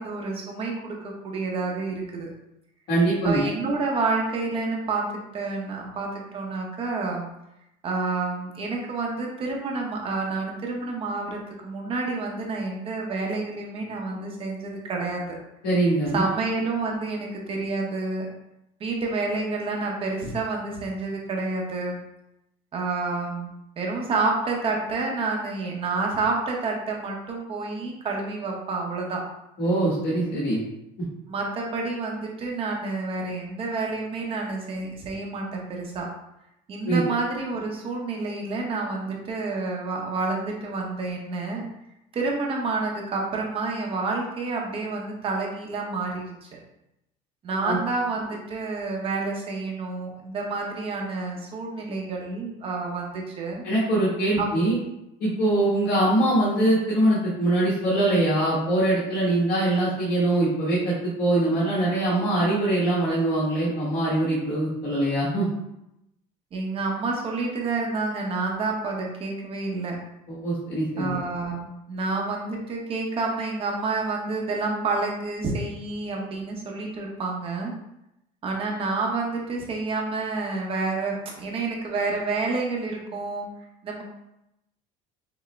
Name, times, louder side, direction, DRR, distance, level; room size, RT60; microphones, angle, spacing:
voice 1, 0.0-2.3 3.2-5.0 5.3-7.3 7.8-15.4 16.1-18.3 18.8-21.9 22.7-23.5 23.8-29.2 31.3-36.1 36.7-41.6 42.1-46.5 47.4-53.6 54.4-54.5 66.5-70.0 71.0-77.7 78.4-83.5 83.8-84.0, right 3 dB, 30° right, 0 dB, 0.8 m, -29 dB
voice 2, 2.9-3.4 15.6-16.2 29.6-30.6 31.0-31.1 36.9-37.0 47.6-47.8 53.6-54.8 55.2-65.5 70.3-71.1, right 1 dB, 55° left, -8 dB, 1.4 m, -23 dB
6.0 x 2.1 x 3.2 m, 0.86 s
cardioid pair, 150°, 18 cm